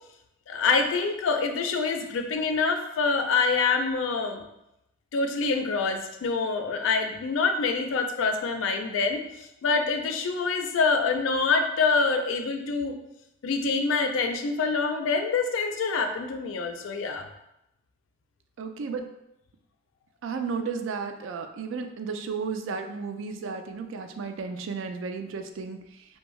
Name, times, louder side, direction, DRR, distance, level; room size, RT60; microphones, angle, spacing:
voice 1, 0.5-4.4 5.1-12.9 13.4-17.3, left 4 dB, 80° left, 6 dB, 0.4 m, -26 dB
voice 2, 18.6-19.1 20.2-25.8, right 5 dB, 80° right, 6 dB, 0.3 m, -33 dB
2.6 x 2.2 x 3.0 m, 0.85 s
head